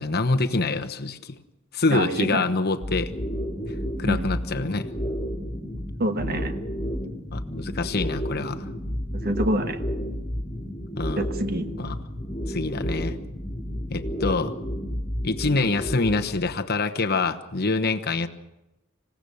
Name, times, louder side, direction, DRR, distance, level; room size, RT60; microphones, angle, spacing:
voice 1, 0.0-1.4 1.7-3.1 4.0-4.9 7.3-8.7 11.0-11.2 11.8-12.0 12.5-13.2 13.9-14.5 15.2-18.3, left 3 dB, 45° left, 7 dB, 1.1 m, -25 dB
voice 2, 1.9-2.4 4.0-4.3 6.0-6.6 9.1-9.8 11.2-11.7, right 1 dB, 45° right, 8 dB, 1.4 m, -26 dB
sound 1, 2.8-16.6, equal, 20° left, 2.8 m, -31 dB
26.5 x 16.5 x 7.0 m, 0.99 s
head